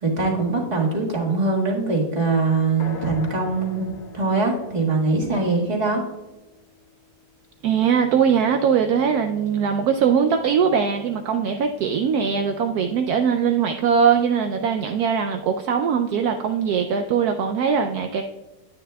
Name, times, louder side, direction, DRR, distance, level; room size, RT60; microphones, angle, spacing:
voice 1, 0.0-6.0, right 3 dB, 25° right, -2 dB, 1.6 m, -22 dB
sound 1, 2.8-6.7, left 4 dB, 70° left, 2.2 m, -40 dB
voice 2, 7.6-18.2, right 7 dB, 75° right, 5 dB, 1.0 m, -21 dB
10.0 x 9.5 x 2.2 m, 1.1 s
omnidirectional pair, 1.8 m